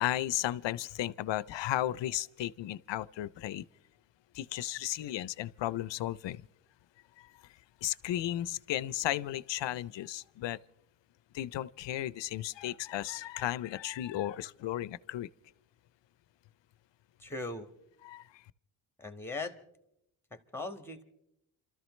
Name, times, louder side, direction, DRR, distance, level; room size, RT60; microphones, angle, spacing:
voice 1, 0.0-3.7 4.3-6.5 7.2-7.3 7.8-10.6 11.3-15.3 18.0-18.4, left 13 dB, 70° left, 0.6 m, -34 dB
voice 2, 17.2-17.7 19.0-19.6 20.3-21.0, left 2 dB, 5° left, 1.6 m, -39 dB
28.5 x 13.5 x 3.1 m
cardioid pair, 75°, 46 cm